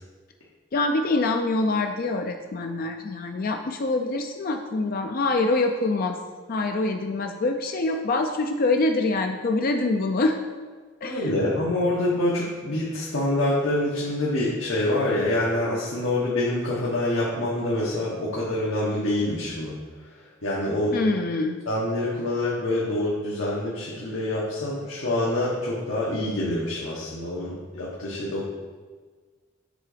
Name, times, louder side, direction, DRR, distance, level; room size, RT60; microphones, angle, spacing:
voice 1, 0.7-6.2 6.5-10.4 11.0-11.3 20.9-21.6, left 2 dB, 45° left, 4 dB, 0.4 m, -25 dB
voice 2, 11.0-19.8 20.4-21.0 21.7-28.5, left 1 dB, 85° left, -6 dB, 1.3 m, -26 dB
7.5 x 3.8 x 5.0 m, 1.4 s
head